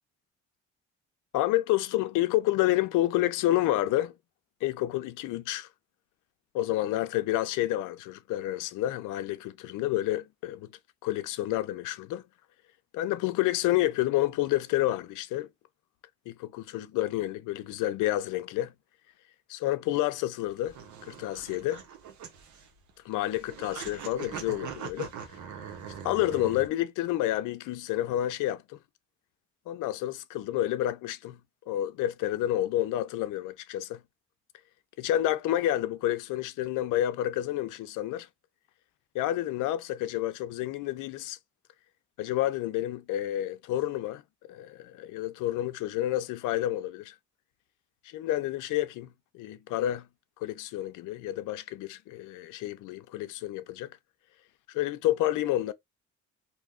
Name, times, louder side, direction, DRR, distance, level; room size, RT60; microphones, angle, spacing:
voice 1, 1.3-4.1 4.6-5.7 6.5-10.7 11.0-12.2 12.9-15.5 16.3-18.7 19.5-20.8 21.0-21.8 23.0-25.1 26.0-28.8 29.7-31.4 31.7-34.0 35.0-38.3 39.1-41.4 42.2-44.2 44.5-47.1 48.0-49.1 49.3-50.1 50.4-53.9 54.7-55.7, left 14 dB, 90° left, 0.5 m, -29 dB
sound 1, 20.4-26.7, right 7 dB, 70° right, 0.9 m, -42 dB
2.7 x 2.2 x 3.6 m
cardioid pair, 90°, 30 cm